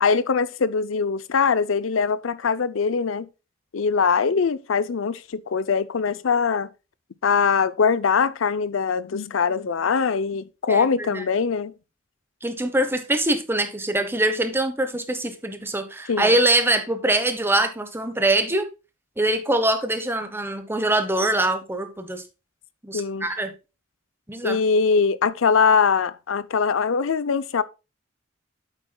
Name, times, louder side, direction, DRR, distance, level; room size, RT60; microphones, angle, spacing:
voice 1, 0.0-3.3 3.7-6.7 7.2-11.7 16.1-16.3 22.9-23.3 24.4-27.6, left 5 dB, 90° left, 0.5 m, -22 dB
voice 2, 10.7-11.2 12.4-18.7 19.2-22.2 22.8-23.5 24.3-24.6, right 1 dB, 10° right, 1.0 m, -23 dB
8.2 x 8.2 x 2.2 m
head